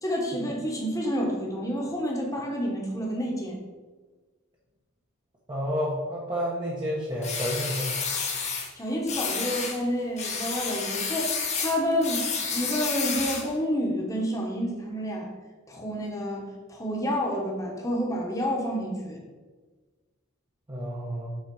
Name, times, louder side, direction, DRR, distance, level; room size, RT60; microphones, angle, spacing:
voice 1, 0.0-3.6 8.8-11.3 11.6-15.3 15.7-19.2, equal, 15° left, -1 dB, 1.3 m, -29 dB
voice 2, 5.5-7.9 20.7-21.3, equal, 20° right, -6 dB, 1.0 m, -30 dB
sound 1, 7.2-8.7 9.1-9.8 10.2-13.5, left 5 dB, 35° left, 1.1 m, -30 dB
7.5 x 4.1 x 5.5 m, 1.3 s
head